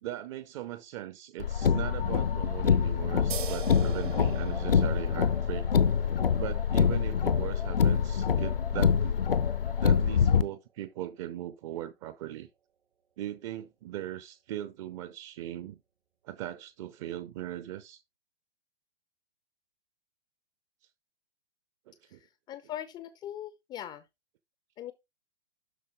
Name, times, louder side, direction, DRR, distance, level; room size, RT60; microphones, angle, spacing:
voice 1, 0.0-5.7 6.4-9.1 9.8-12.5 13.2-15.8 16.2-18.0 21.9-22.2, right 13 dB, 35° right, 0.8 m, -39 dB
Car, 1.4-10.4, left 7 dB, 70° left, 0.9 m, -25 dB
sound 1, 3.3-10.4, right 9 dB, 60° right, 1.5 m, -45 dB
voice 2, 22.1-24.1 24.8-24.9, left 11 dB, 15° left, 0.6 m, -41 dB
12.0 x 4.3 x 3.5 m
figure-of-eight pair, 110°, 29 cm